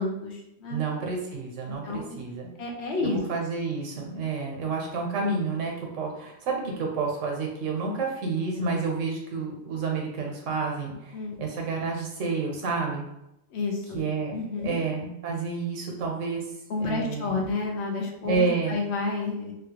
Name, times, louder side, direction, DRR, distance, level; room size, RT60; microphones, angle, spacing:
voice 1, 0.0-0.8 1.7-2.2 2.6-3.2 11.1-11.4 13.5-14.0 14.3-14.8 16.7-19.5, left 3 dB, 65° left, 1 dB, 0.8 m, -30 dB
voice 2, 0.7-2.5 3.0-13.0 13.9-14.3 14.6-16.4 16.8-17.5 18.2-18.8, right 4 dB, 90° right, 0 dB, 1.1 m, -30 dB
3.1 x 2.4 x 2.8 m, 0.85 s
omnidirectional pair, 1.3 m